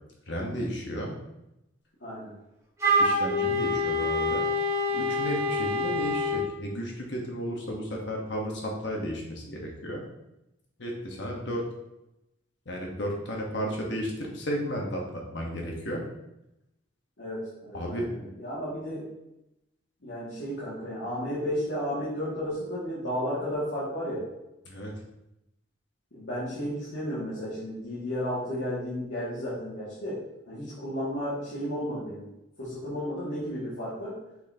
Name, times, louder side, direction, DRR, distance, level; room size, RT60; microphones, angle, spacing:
voice 1, 0.3-1.1 3.0-4.4 4.9-10.1 10.8-11.6 12.7-16.0 17.7-18.1 24.7-24.9, equal, 60° left, 0 dB, 1.1 m, -33 dB
voice 2, 2.0-2.3 17.2-19.1 20.0-24.2 26.1-30.2 30.5-32.3 32.6-34.2, equal, 90° left, -11 dB, 2.2 m, -33 dB
Wind instrument woodwind instrument, 2.8-6.5, left 1 dB, 15° right, 1.2 m, -26 dB
6.5 x 5.3 x 2.8 m, 0.88 s
head